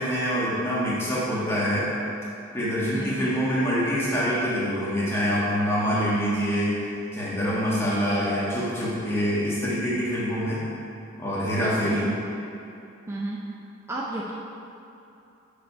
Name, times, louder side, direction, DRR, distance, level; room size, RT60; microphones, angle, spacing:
voice 1, 0.0-1.9 2.5-6.7 7.1-10.6 11.2-12.1, equal, 10° left, -8 dB, 1.6 m, -25 dB
voice 2, 2.9-3.3 11.8-12.1 13.1-13.5 13.9-14.3, right 1 dB, 10° right, -5 dB, 0.5 m, -30 dB
6.7 x 5.1 x 5.5 m, 2.7 s
head